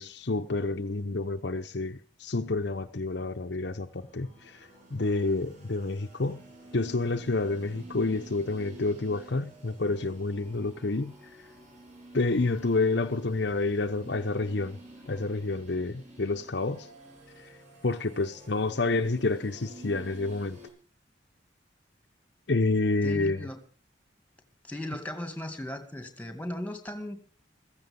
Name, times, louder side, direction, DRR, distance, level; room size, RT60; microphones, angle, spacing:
voice 1, 0.0-4.6 4.9-6.4 6.7-11.1 12.1-14.8 15.1-16.9 17.8-20.6 22.5-23.4, left 3 dB, 60° left, 0.9 m, -29 dB
sound 1, 3.8-20.7, right 1 dB, 40° right, 7.2 m, -50 dB
voice 2, 23.0-23.6 24.6-27.2, left 1 dB, 10° left, 2.1 m, -37 dB
15.5 x 15.5 x 5.4 m
head